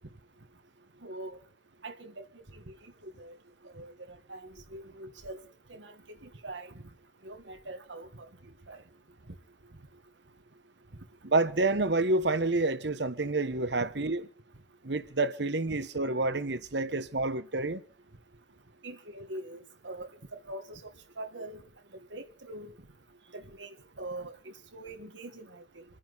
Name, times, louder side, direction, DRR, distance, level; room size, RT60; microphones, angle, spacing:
voice 1, 1.0-1.4 1.8-2.3 2.5-3.3 3.6-5.4 5.7-6.0 6.2-6.7 7.2-8.8 18.8-21.6 22.1-22.7 23.3-25.8, right 2 dB, 85° right, 1.6 m, -44 dB
voice 2, 11.2-14.2 14.8-17.8, right 2 dB, 65° right, 1.2 m, -28 dB
27.5 x 10.5 x 4.0 m
head